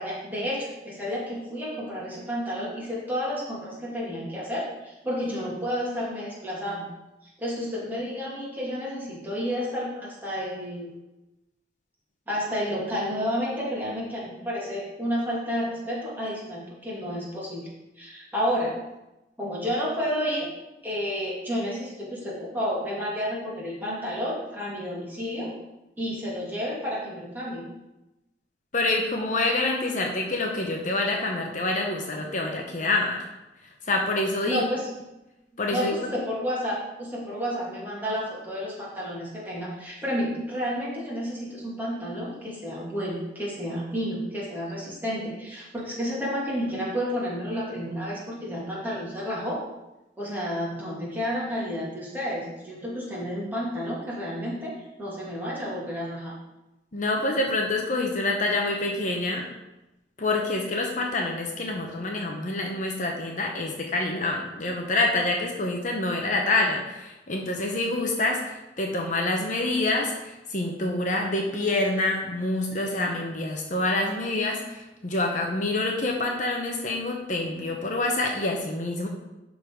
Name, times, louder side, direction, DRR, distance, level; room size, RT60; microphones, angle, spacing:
voice 1, 0.0-6.8 7.4-11.0 12.3-17.6 18.0-18.7 19.4-20.5 20.8-25.5 26.0-27.7 34.5-34.9 35.5-49.7 50.2-56.3, equal, 10° right, -6 dB, 2.4 m, -31 dB
voice 2, 28.7-33.2 33.9-34.6 35.6-36.1 56.9-59.5 60.2-79.1, left 2 dB, 45° left, 1 dB, 0.9 m, -27 dB
11.5 x 4.0 x 4.7 m, 0.97 s
head